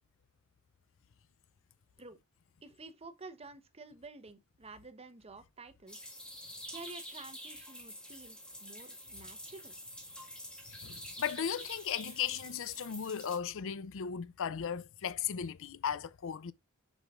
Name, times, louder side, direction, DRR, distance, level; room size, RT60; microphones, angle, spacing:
voice 1, 2.6-6.1 6.7-9.7, right 3 dB, 30° right, 0.9 m, -50 dB
sound 1, 5.9-13.4, equal, 5° left, 1.7 m, -47 dB
voice 2, 10.7-16.5, left 8 dB, 60° left, 0.5 m, -36 dB
6.7 x 6.3 x 2.5 m
head